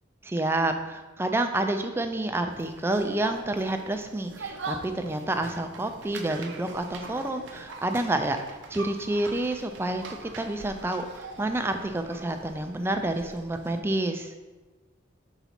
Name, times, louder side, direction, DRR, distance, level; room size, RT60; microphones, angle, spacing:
voice 1, 0.2-8.4 8.7-14.3, right 1 dB, 10° right, 6 dB, 0.3 m, -29 dB
sound 1, 2.5-13.8, right 3 dB, 60° right, 0.6 m, -42 dB
5.7 x 4.0 x 4.2 m, 1.2 s
head